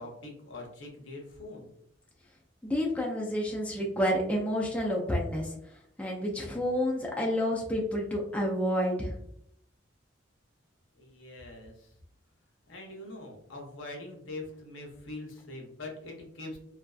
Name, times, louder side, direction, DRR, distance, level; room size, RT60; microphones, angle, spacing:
voice 1, 0.0-1.7 10.9-11.9 12.7-16.6, left 2 dB, 75° left, 0 dB, 0.7 m, -43 dB
voice 2, 2.6-5.5 6.0-9.1, equal, 5° left, -2 dB, 0.3 m, -29 dB
2.5 x 2.3 x 2.3 m, 0.74 s
head